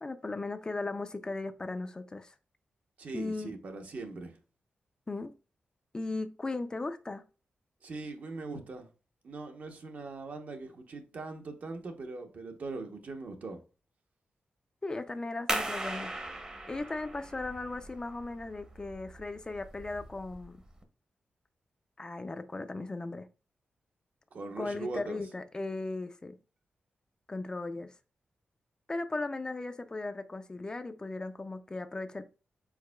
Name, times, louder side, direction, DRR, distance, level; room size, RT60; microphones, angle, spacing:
voice 1, 0.0-2.3 3.1-3.5 5.1-5.3 5.9-7.2 14.8-16.1 16.7-20.6 22.0-23.3 24.6-26.3 27.3-27.9 28.9-32.2, left 2 dB, 25° left, 0.3 m, -37 dB
voice 2, 3.0-4.4 7.8-8.9 9.2-13.6 24.3-25.2, right 3 dB, 55° right, 0.8 m, -41 dB
sound 1, 15.5-20.8, right 1 dB, 25° right, 0.7 m, -39 dB
4.7 x 4.2 x 2.2 m
wide cardioid pair, 120°, 3 cm